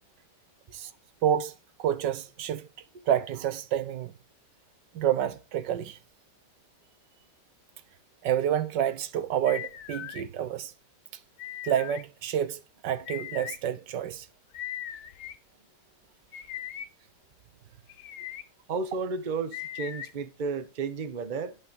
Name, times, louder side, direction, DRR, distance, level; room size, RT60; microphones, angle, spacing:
voice 1, 1.2-1.5 1.8-2.7 3.1-4.1 4.9-6.0 8.2-10.7 11.6-14.3, right 10 dB, 80° right, 1.5 m, -28 dB
sound 1, 9.5-10.2 11.4-12.0 13.1-13.6 14.5-15.4 16.3-16.9 17.9-18.4 19.5-20.1, left 11 dB, 75° left, 1.4 m, -39 dB
voice 2, 18.7-21.6, right 4 dB, 35° right, 0.9 m, -32 dB
11.0 x 4.6 x 5.2 m
omnidirectional pair, 1.9 m